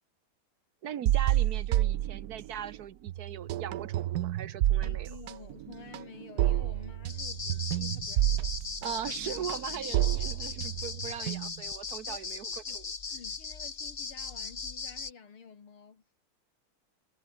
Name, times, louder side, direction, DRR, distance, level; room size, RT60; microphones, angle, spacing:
voice 1, 0.8-5.1 8.8-12.9, right 9 dB, 55° right, 1.2 m, -39 dB
sound 1, 1.1-2.8 3.1-11.7, right 13 dB, 85° right, 0.8 m, -29 dB
voice 2, 4.8-8.6 10.0-10.1 10.9-11.0 12.1-12.3 12.7-12.8 13.1-16.2, left 6 dB, 75° left, 3.5 m, -50 dB
sound 2, 7.1-15.1, left 5 dB, 30° left, 1.6 m, -38 dB
omnidirectional pair, 2.4 m